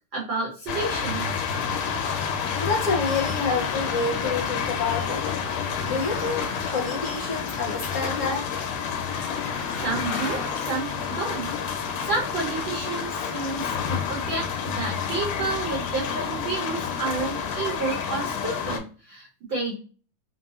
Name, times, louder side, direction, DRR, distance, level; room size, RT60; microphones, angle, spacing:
voice 1, 0.1-1.4 9.8-19.7, right 3 dB, 80° right, -4 dB, 1.0 m, -31 dB
sound 1, 0.7-18.8, left 7 dB, 90° left, 2.4 m, -29 dB
voice 2, 2.6-5.3 5.8-6.5 6.7-8.5, left 4 dB, 45° left, -8 dB, 1.0 m, -28 dB
sound 2, 3.5-13.5, left 3 dB, 65° left, 2.0 m, -40 dB
5.1 x 2.0 x 2.6 m, 0.37 s
omnidirectional pair, 3.7 m